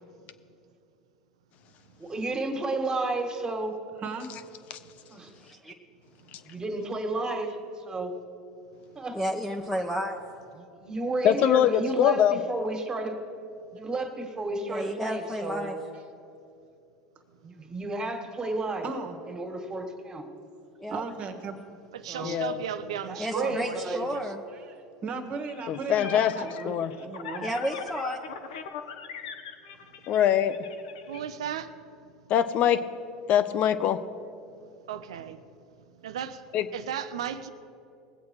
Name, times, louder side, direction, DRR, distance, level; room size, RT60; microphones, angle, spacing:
voice 1, 2.0-3.8 5.1-5.3 6.4-8.1 9.0-9.2 10.6-13.2 13.7-15.8 17.4-18.9 19.3-20.3 22.1-22.4 23.1-24.1, right 2 dB, 25° right, 4 dB, 2.0 m, -32 dB
voice 2, 9.1-10.2 14.7-15.8 20.8-21.0 23.2-24.4 27.4-28.2, equal, 5° left, 0 dB, 1.0 m, -32 dB
voice 3, 11.2-12.4 22.2-22.6 25.7-26.3 26.6-26.9 30.1-30.6 32.3-32.8 33.3-34.0 36.5-36.6, left 10 dB, 50° left, 12 dB, 0.8 m, -23 dB
voice 4, 18.8-19.2 20.9-21.5 24.5-24.7 25.0-27.5, right 4 dB, 45° right, 6 dB, 1.5 m, -36 dB
voice 5, 21.9-24.3 31.1-31.7 34.9-35.4 36.0-36.4 36.7-37.5, right 9 dB, 85° right, 11 dB, 0.7 m, -35 dB
sound 1, 25.4-31.2, left 6 dB, 80° left, 1.0 m, -40 dB
20.0 x 8.1 x 4.8 m, 2.6 s
hypercardioid pair, 90°, 3 cm